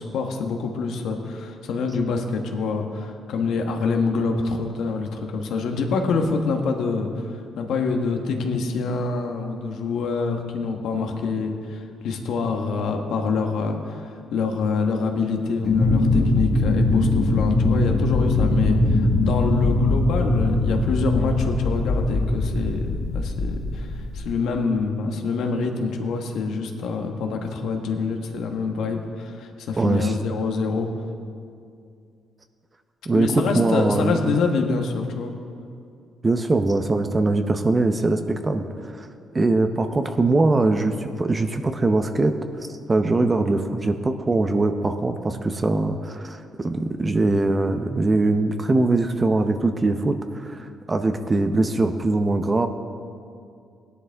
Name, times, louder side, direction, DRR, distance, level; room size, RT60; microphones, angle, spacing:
voice 1, 0.0-30.9 33.1-35.3, left 4 dB, 80° left, 3 dB, 1.3 m, -26 dB
sound 1, 15.6-24.2, left 2 dB, 40° left, 1.4 m, -21 dB
voice 2, 29.8-30.1 33.1-34.3 36.2-38.7 38.9-39.1 39.3-42.4 42.9-52.7, right 2 dB, 25° right, 7 dB, 0.7 m, -22 dB
17.0 x 11.0 x 3.5 m, 2.4 s
cardioid pair, 90°, 0 cm